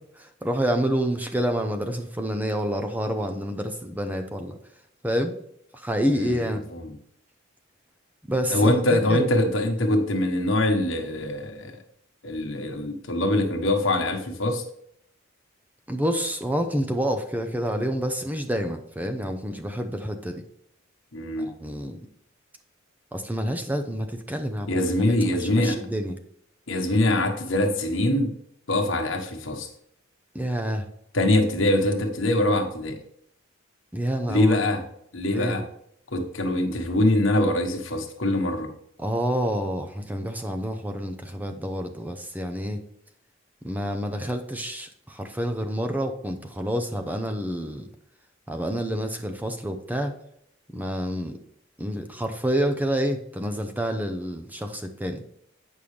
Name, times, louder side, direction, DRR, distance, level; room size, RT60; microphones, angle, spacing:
voice 1, 0.2-4.6 5.0-5.4 5.7-6.7 8.3-9.3 15.9-20.4 21.4-22.1 23.1-24.8 25.2-26.2 30.3-30.9 33.9-34.6 35.3-35.6 39.0-42.8 43.6-47.9 48.5-50.2 50.7-51.3 51.8-55.2, equal, 10° right, 5 dB, 0.6 m, -28 dB
voice 2, 6.1-6.9 8.5-11.8 12.2-14.6 21.1-21.5 24.7-25.8 26.7-28.3 28.7-29.7 31.1-33.0 34.3-34.8 35.1-35.6 36.1-38.7, left 1 dB, 75° left, 3 dB, 1.3 m, -23 dB
8.7 x 5.5 x 3.3 m, 0.71 s
head